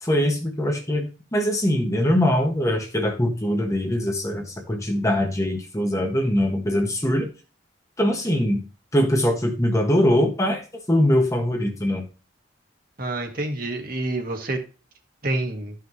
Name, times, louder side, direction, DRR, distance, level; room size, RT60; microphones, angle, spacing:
voice 1, 0.0-7.3 8.0-8.6 8.9-10.6 10.9-12.1, equal, 15° left, 4 dB, 1.3 m, -22 dB
voice 2, 13.0-14.6 15.2-15.7, right 2 dB, 50° right, 3 dB, 1.8 m, -27 dB
12.5 x 5.8 x 3.2 m, 0.33 s
head